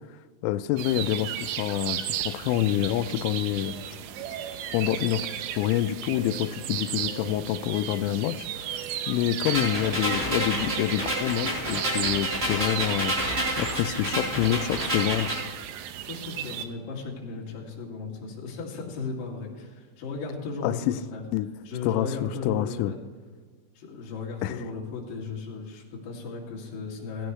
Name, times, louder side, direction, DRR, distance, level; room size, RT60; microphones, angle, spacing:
voice 1, 0.4-3.7 4.7-5.2 5.6-13.2 13.6-15.3 20.6-20.7 21.3-21.5 21.9-22.9 24.4-24.5, left 13 dB, 85° left, 12 dB, 3.1 m, -27 dB
sound 1, 0.8-16.7, right 10 dB, 80° right, 2.9 m, -35 dB
sound 2, 9.4-15.4, equal, 15° right, 3.4 m, -29 dB
voice 2, 16.1-21.2 21.7-23.0 23.7-27.3, left 4 dB, 50° left, -3 dB, 3.7 m, -36 dB
16.5 x 15.0 x 3.2 m, 1.6 s
omnidirectional pair, 5.6 m